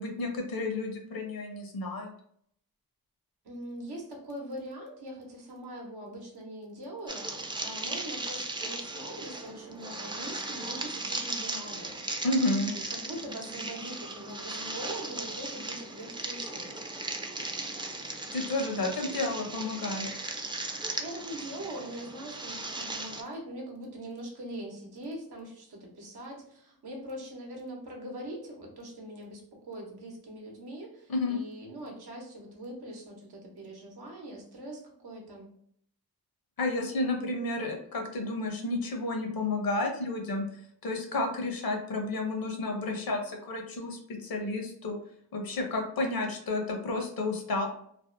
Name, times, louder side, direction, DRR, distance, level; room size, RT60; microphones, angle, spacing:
voice 1, 0.0-2.1 12.2-12.7 18.3-20.1 31.1-31.4 36.6-40.4 40.8-45.0 45.3-47.6, left 2 dB, 65° left, 3 dB, 0.7 m, -31 dB
voice 2, 3.4-12.0 12.6-16.7 20.8-35.5, right 1 dB, 85° right, 0 dB, 0.8 m, -42 dB
sound 1, 7.1-23.2, right 2 dB, 15° right, 0.3 m, -37 dB
2.6 x 2.1 x 2.5 m, 0.66 s
cardioid pair, 55°, 38 cm